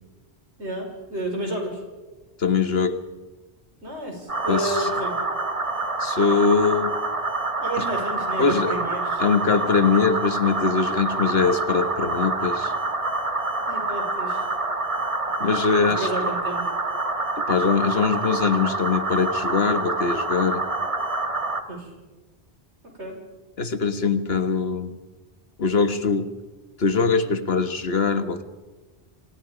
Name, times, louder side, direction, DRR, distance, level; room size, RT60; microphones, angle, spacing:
voice 1, 0.6-1.8 3.8-5.2 7.6-9.2 13.7-14.5 15.8-16.6 21.7-21.9 23.0-23.2, right 1 dB, 85° right, 2 dB, 5.7 m, -31 dB
voice 2, 2.4-3.0 4.5-4.9 6.0-7.0 7.8-7.9 8.4-8.8 9.2-12.7 15.4-16.3 17.4-20.6 23.6-25.0 25.6-26.3 26.8-28.4, left 5 dB, 65° left, 10 dB, 1.6 m, -22 dB
sound 1, 4.3-21.6, right 3 dB, 30° right, 1.7 m, -27 dB
28.5 x 24.5 x 5.0 m, 1.2 s
omnidirectional pair, 1.1 m